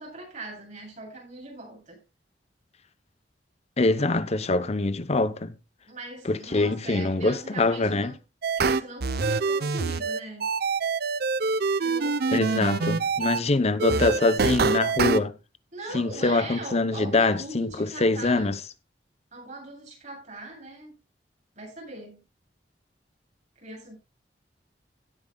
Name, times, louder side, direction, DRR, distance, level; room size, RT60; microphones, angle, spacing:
voice 1, 0.0-2.0 5.9-8.2 8.6-10.6 11.8-12.8 15.7-18.5 19.3-20.9 21.6-22.2 23.6-24.0, right 2 dB, 45° right, 7.7 m, -40 dB
voice 2, 3.8-5.5 6.3-8.1 12.3-15.4 15.9-18.6, left 2 dB, 35° left, 0.8 m, -24 dB
sound 1, 8.4-13.4 13.8-15.2, right 4 dB, 60° right, 0.7 m, -25 dB
17.0 x 9.3 x 2.3 m
head